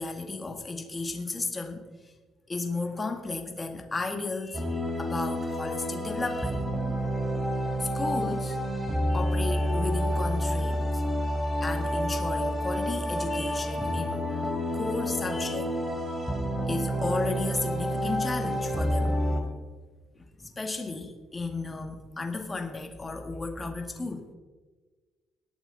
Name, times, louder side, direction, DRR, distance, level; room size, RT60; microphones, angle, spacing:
voice 1, 0.0-2.1 2.5-6.6 7.8-8.6 9.1-11.0 11.6-14.3 14.7-15.7 16.7-19.2 20.1-24.3, left 3 dB, 20° left, 4 dB, 1.6 m, -34 dB
sound 1, 4.5-19.4, equal, 10° right, 3.3 m, -29 dB
19.0 x 9.0 x 3.9 m, 1.3 s
cardioid pair, 120°, 0 cm